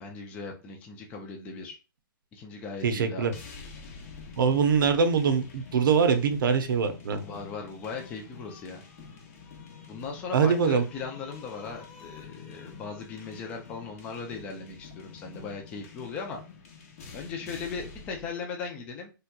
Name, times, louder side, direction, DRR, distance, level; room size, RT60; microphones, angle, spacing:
voice 1, 0.0-1.8 2.3-3.4 7.2-8.8 9.9-16.4 17.1-19.1, left 5 dB, 10° left, 2 dB, 0.4 m, -38 dB
voice 2, 2.8-3.3 4.4-7.2 10.3-10.8, right 6 dB, 65° right, 7 dB, 0.7 m, -23 dB
sound 1, 3.3-18.3, left 5 dB, 40° left, 0.7 m, -47 dB
3.3 x 2.9 x 2.2 m, 0.31 s
hypercardioid pair, 165°, 12 cm